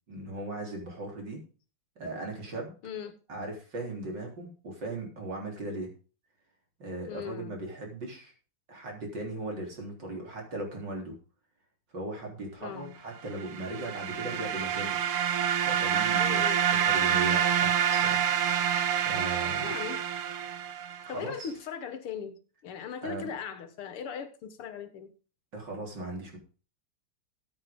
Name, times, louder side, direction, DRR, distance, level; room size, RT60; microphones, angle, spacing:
voice 1, 0.1-1.4 2.0-2.7 3.3-5.9 6.8-8.3 8.7-11.2 11.9-15.0 15.6-16.4 16.7-19.7 21.0-21.5 23.0-23.3 25.5-26.4, right 2 dB, 50° right, 1 dB, 4.3 m, -38 dB
voice 2, 2.8-3.2 7.1-7.6 12.6-13.0 16.2-16.6 18.8-18.9 19.6-20.0 21.1-25.1, left 7 dB, 75° left, 10 dB, 2.2 m, -39 dB
sound 1, 13.4-21.1, right 8 dB, 75° right, 1.9 m, -27 dB
14.5 x 8.8 x 3.7 m, 0.36 s
omnidirectional pair, 2.4 m